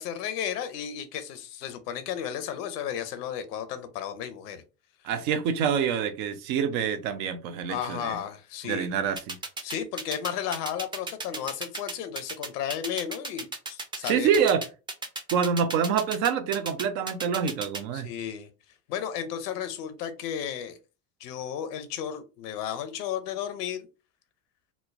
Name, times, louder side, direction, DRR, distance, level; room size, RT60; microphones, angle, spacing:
voice 1, 0.0-4.6 7.7-9.0 9.6-14.3 17.9-18.5 18.9-20.8 21.2-23.9, left 9 dB, 80° left, 0.7 m, -33 dB
voice 2, 5.0-8.2 8.6-9.4 14.0-14.6 15.3-18.1, right 7 dB, 65° right, 0.7 m, -26 dB
sound 1, 9.2-17.8, right 2 dB, 10° right, 0.4 m, -34 dB
3.1 x 2.0 x 2.4 m
hypercardioid pair, 75°, 46 cm